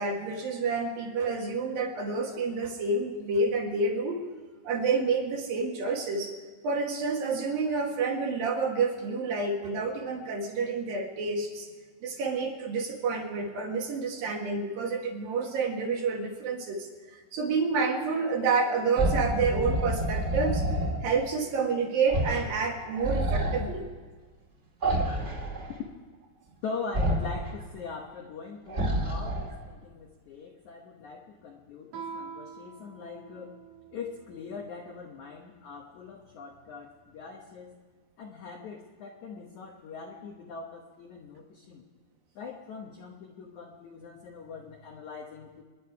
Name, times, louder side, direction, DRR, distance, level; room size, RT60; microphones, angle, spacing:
voice 1, 0.0-4.2 4.6-6.3 6.6-11.7 12.0-20.6 21.0-23.8, right 4 dB, 65° right, 1 dB, 3.0 m, -29 dB
sound 1, 18.9-21.0 22.1-22.5 22.8-23.6 24.8-25.7 26.9-27.5 28.7-29.6, right 1 dB, 25° right, 1.6 m, -28 dB
voice 2, 26.6-33.6 33.9-37.8 38.2-41.8 42.4-45.6, left 5 dB, 70° left, 1 dB, 1.8 m, -42 dB
Guitar, 31.9-34.4, right 5 dB, 80° right, 4.8 m, -44 dB
28.5 x 10.5 x 4.7 m, 1.4 s
omnidirectional pair, 4.9 m